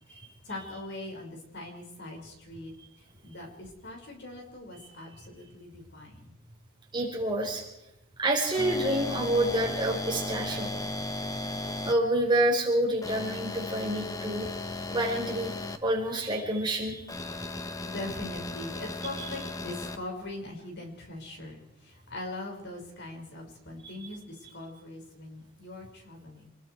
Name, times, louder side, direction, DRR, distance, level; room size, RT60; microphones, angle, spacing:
voice 1, 0.4-2.7 3.2-6.3 17.5-26.5, left 2 dB, 55° left, 2 dB, 5.5 m, -41 dB
voice 2, 6.9-7.6 8.2-10.7 11.8-14.5 14.9-15.5 15.8-17.0, right 1 dB, 20° right, 0 dB, 4.6 m, -27 dB
sound 1, 8.5-11.9 13.0-15.8 17.1-20.0, left 2 dB, 15° left, 1.2 m, -35 dB
27.5 x 20.5 x 4.7 m, 0.89 s
head